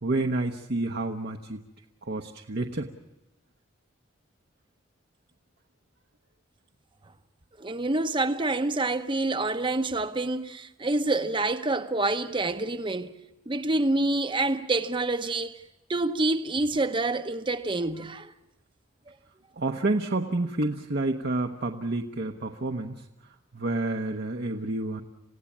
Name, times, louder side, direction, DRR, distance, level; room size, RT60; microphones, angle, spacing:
voice 1, 0.0-1.6 2.0-2.9 19.6-23.0 23.5-25.0, right 2 dB, 55° right, 1.0 m, -29 dB
voice 2, 7.6-13.1 13.5-15.6 15.9-18.3, right 2 dB, 25° right, 0.9 m, -27 dB
28.5 x 16.5 x 7.3 m
head